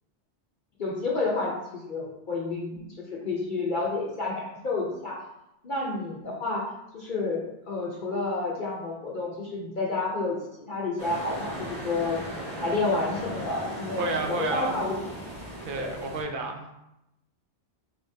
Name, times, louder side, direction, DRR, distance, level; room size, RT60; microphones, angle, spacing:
voice 1, 0.8-5.2 5.6-6.6 6.9-12.2 12.6-14.9 15.8-15.9, left 3 dB, 50° left, -3 dB, 0.8 m, -30 dB
sound 1, 11.0-16.2, equal, 25° right, 1.3 m, -37 dB
voice 2, 14.0-14.9 15.6-16.8, right 3 dB, 60° right, 3 dB, 0.7 m, -31 dB
4.4 x 3.4 x 2.6 m, 0.88 s
omnidirectional pair, 1.1 m